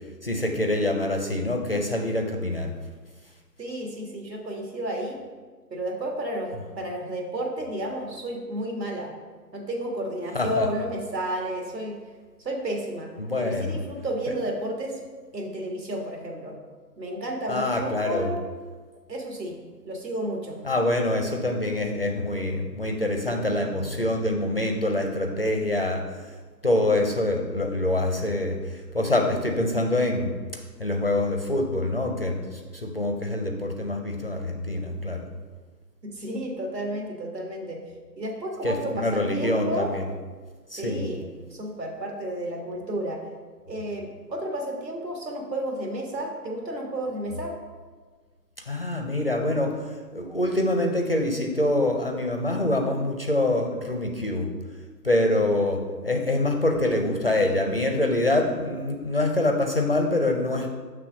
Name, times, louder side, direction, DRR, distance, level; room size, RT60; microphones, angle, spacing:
voice 1, 0.2-2.7 10.3-10.7 13.2-13.8 17.5-18.3 20.6-26.0 26.6-30.3 30.8-35.3 38.6-40.0 40.7-41.0 48.7-49.7 50.1-54.5 55.0-60.7, left 1 dB, 40° left, 3 dB, 0.4 m, -25 dB
voice 2, 3.6-5.2 5.7-9.1 9.5-12.0 12.4-13.1 13.4-15.0 15.3-16.6 17.0-18.4 19.1-19.5 19.9-20.6 36.0-37.8 38.2-39.9 40.7-43.2 43.7-47.5, right 1 dB, 80° right, 1 dB, 1.6 m, -32 dB
6.7 x 3.3 x 5.0 m, 1.5 s
figure-of-eight pair, 140°, 50 cm